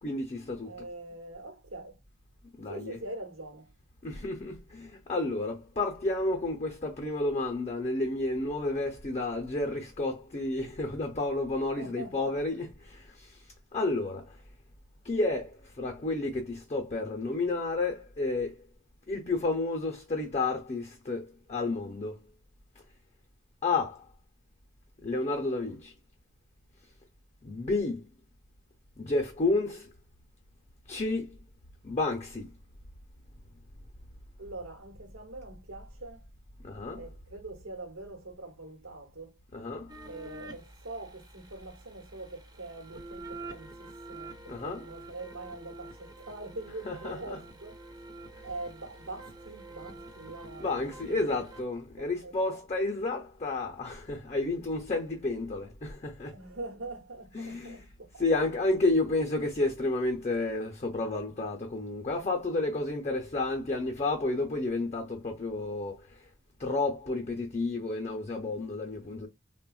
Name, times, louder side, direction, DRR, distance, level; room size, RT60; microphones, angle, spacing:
voice 1, 0.0-0.9 2.6-3.0 4.0-13.4 13.7-14.4 15.0-18.5 19.1-22.2 23.6-24.1 25.0-25.9 27.4-28.1 29.0-29.9 30.9-31.4 31.8-32.5 36.6-37.1 39.5-39.9 44.5-44.8 46.8-47.4 50.6-56.4 57.3-57.9 58.2-66.1 66.6-69.3, left 2 dB, 30° left, 0.6 m, -31 dB
voice 2, 0.6-2.0 2.7-3.7 11.8-12.3 34.4-36.2 37.0-39.3 40.1-47.8 48.4-51.3 52.0-52.6 56.3-57.9 58.1-58.3, right 2 dB, 85° right, 0.9 m, -43 dB
sound 1, 39.9-51.6, right 2 dB, 20° right, 0.5 m, -47 dB
3.4 x 2.2 x 2.3 m
head